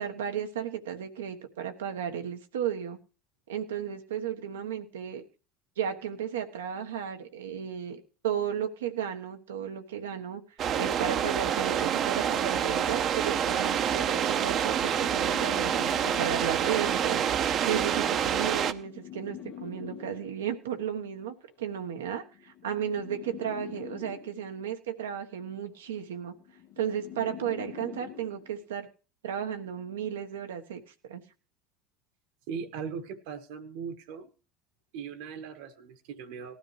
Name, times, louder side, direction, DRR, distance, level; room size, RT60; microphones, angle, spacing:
voice 1, 0.0-3.0 3.5-5.2 5.8-10.4 10.7-17.3 17.6-26.3 26.8-28.9 29.2-31.2, right 9 dB, 90° right, 6 dB, 1.2 m, -34 dB
sound 1, 10.6-18.7, right 9 dB, 45° right, 0.9 m, -27 dB
sound 2, 14.3-16.6 17.6-20.6 21.6-24.6 25.6-28.6, left 10 dB, 65° left, 1.5 m, -45 dB
voice 2, 32.5-34.3 34.9-36.6, right 6 dB, 75° right, 7 dB, 1.5 m, -39 dB
18.0 x 13.0 x 3.2 m, 0.35 s
hypercardioid pair, 90°, 0 cm